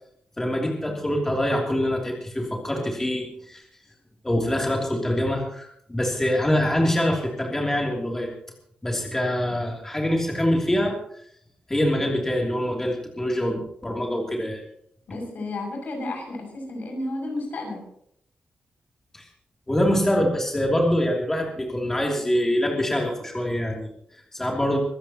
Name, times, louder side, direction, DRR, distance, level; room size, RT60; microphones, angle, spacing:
voice 1, 0.4-3.6 4.2-8.3 8.8-10.9 11.7-14.6 19.1-19.3 19.7-24.8, left 1 dB, 10° left, -1 dB, 3.0 m, -24 dB
voice 2, 15.1-17.8, left 2 dB, 65° left, 2 dB, 6.8 m, -32 dB
24.5 x 15.5 x 3.0 m, 0.69 s
wide cardioid pair, 135°, 3 cm